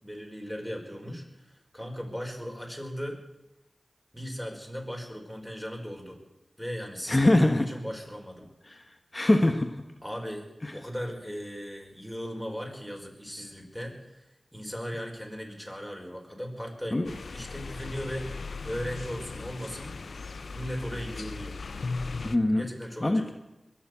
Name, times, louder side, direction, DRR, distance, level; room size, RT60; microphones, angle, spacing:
voice 1, 0.0-3.2 4.1-6.2 6.6-8.5 10.0-10.5 10.7-18.3 18.6-20.0 20.5-21.5 22.6-23.3, equal, 5° left, 1 dB, 5.1 m, -37 dB
voice 2, 7.1-7.7 9.1-9.7 16.9-17.1 22.2-22.7 23.0-23.2, left 1 dB, 30° left, 5 dB, 1.4 m, -22 dB
sound 1, 17.0-22.4, left 4 dB, 80° left, 0.7 m, -38 dB
22.0 x 7.4 x 8.4 m, 0.97 s
cardioid pair, 40°, 0 cm